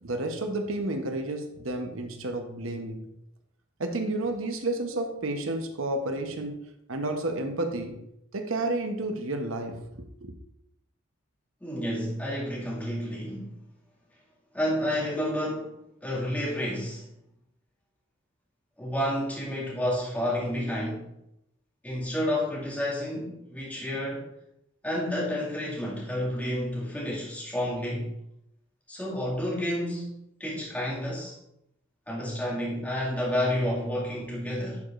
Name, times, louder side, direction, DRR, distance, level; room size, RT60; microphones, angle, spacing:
voice 1, 0.0-3.1 3.8-6.6 6.9-8.0 8.3-10.3, right 2 dB, 80° right, 5 dB, 0.9 m, -31 dB
voice 2, 11.6-13.5 14.5-17.0 18.8-21.1 21.8-24.3 24.8-28.1 28.9-31.4 32.1-34.8, equal, 10° left, -7 dB, 2.1 m, -30 dB
10.5 x 4.9 x 2.5 m, 0.82 s
head